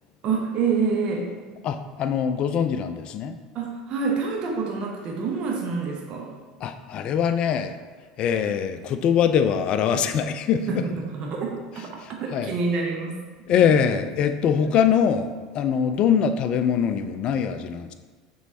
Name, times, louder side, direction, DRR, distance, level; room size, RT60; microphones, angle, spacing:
voice 1, 0.2-1.3 3.5-6.3 10.7-13.2, right 4 dB, 45° right, 0 dB, 0.8 m, -27 dB
voice 2, 1.6-3.4 6.6-7.7 8.2-10.7 12.0-12.6 13.5-17.9, left 7 dB, 45° left, 9 dB, 0.4 m, -23 dB
6.0 x 3.1 x 2.8 m, 1.4 s
hypercardioid pair, 80°, 2 cm